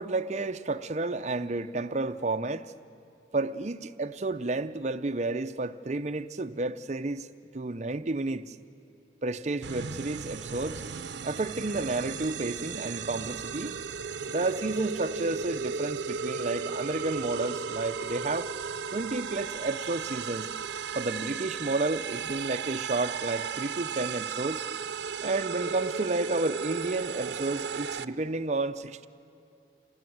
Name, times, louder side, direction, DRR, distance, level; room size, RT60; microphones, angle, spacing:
voice 1, 0.0-2.7 3.3-7.3 7.5-8.5 9.2-10.8 11.2-13.8 14.3-18.5 18.9-20.5 20.9-24.6 25.2-29.1, right 2 dB, 40° right, 0.6 m, -31 dB
sound 1, 9.6-28.0, right 6 dB, 80° right, 0.6 m, -35 dB
26.5 x 19.0 x 9.4 m
head